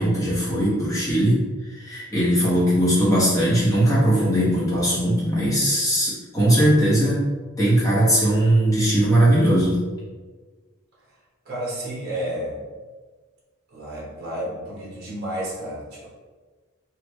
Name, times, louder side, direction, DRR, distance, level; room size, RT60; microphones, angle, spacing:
voice 1, 0.0-1.4 1.7-7.2 7.6-9.8, right 1 dB, 15° left, -8 dB, 1.0 m, -19 dB
voice 2, 11.4-12.6 13.7-16.1, right 1 dB, 50° right, -5 dB, 0.9 m, -31 dB
3.2 x 2.4 x 3.1 m, 1.4 s
head